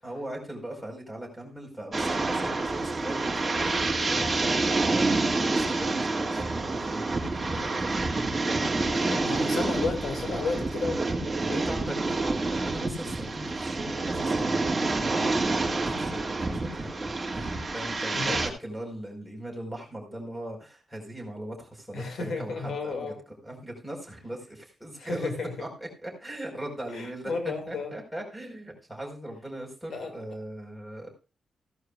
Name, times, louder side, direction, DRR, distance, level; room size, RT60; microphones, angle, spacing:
voice 1, 0.0-9.6 10.3-10.6 11.4-25.3 25.6-31.1, right 1 dB, ahead, 2 dB, 4.7 m, -40 dB
sound 1, 1.9-18.5, right 3 dB, 20° right, 2.1 m, -28 dB
voice 2, 8.9-11.0 11.5-11.6 18.1-18.4 21.9-23.2 25.0-25.5 26.9-27.9 29.9-30.1, left 4 dB, 70° left, 5 dB, 2.3 m, -32 dB
16.5 x 11.0 x 2.5 m, 0.31 s
wide cardioid pair, 140°, 0 cm